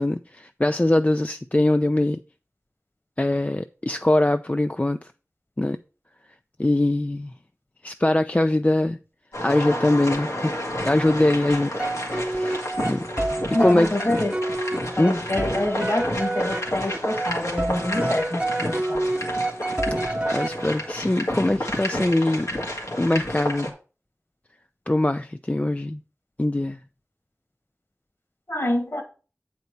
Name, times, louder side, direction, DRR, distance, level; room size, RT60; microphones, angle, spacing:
voice 1, 0.0-2.2 3.2-5.0 5.6-5.8 6.6-7.3 7.8-9.0 9.4-10.5 10.8-11.7 12.1-13.0 13.6-13.9 15.0-15.2 20.3-22.5 23.0-23.7 24.9-26.0 26.4-26.8, left 1 dB, 30° left, 0.4 m, -22 dB
sound 1, 9.3-23.7, left 1 dB, 90° left, 1.9 m, -31 dB
sound 2, 11.8-21.1, right 2 dB, 20° right, 0.7 m, -29 dB
voice 2, 13.5-14.4 15.0-19.1 28.5-29.0, left 1 dB, 50° left, 1.8 m, -26 dB
8.3 x 4.5 x 5.4 m
wide cardioid pair, 40°, 5 cm